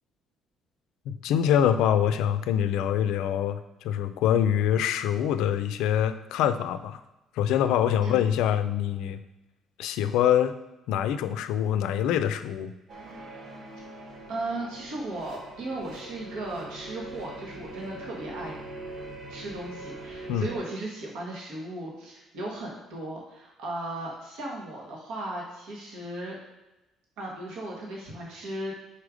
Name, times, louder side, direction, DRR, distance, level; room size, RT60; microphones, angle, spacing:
voice 1, 1.1-3.6 3.8-7.0 7.4-9.2 9.8-10.5 10.9-12.7 20.3-20.5, left 10 dB, 90° left, 11 dB, 0.4 m, -25 dB
sound 1, 12.9-20.6, right 2 dB, 50° right, 1.3 m, -42 dB
voice 2, 14.3-18.5 19.3-26.4 27.2-28.7, right 1 dB, 75° right, -2 dB, 1.4 m, -36 dB
4.9 x 4.3 x 5.0 m, 1.0 s
cardioid pair, 160°, 0 cm